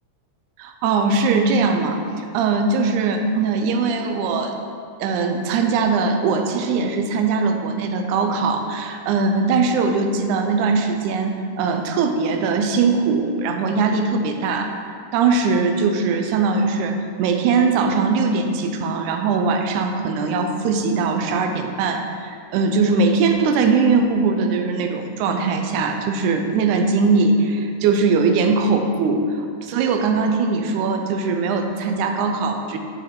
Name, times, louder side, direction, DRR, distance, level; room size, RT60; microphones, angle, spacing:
voice 1, 0.6-4.5 5.0-29.3 29.6-32.8, right 4 dB, 90° right, 5 dB, 2.1 m, -20 dB
10.5 x 3.8 x 4.7 m, 2.3 s
omnidirectional pair, 3.4 m